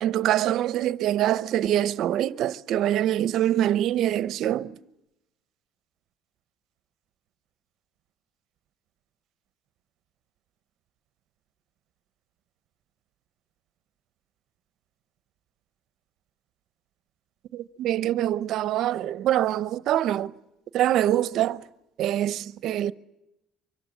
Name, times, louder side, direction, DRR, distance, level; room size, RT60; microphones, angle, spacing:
voice 1, 0.0-4.7 17.5-20.3 20.7-21.6 22.0-22.9, right 12 dB, 60° right, 0.8 m, -24 dB
25.0 x 15.5 x 9.9 m
cardioid pair, 130°, 0 cm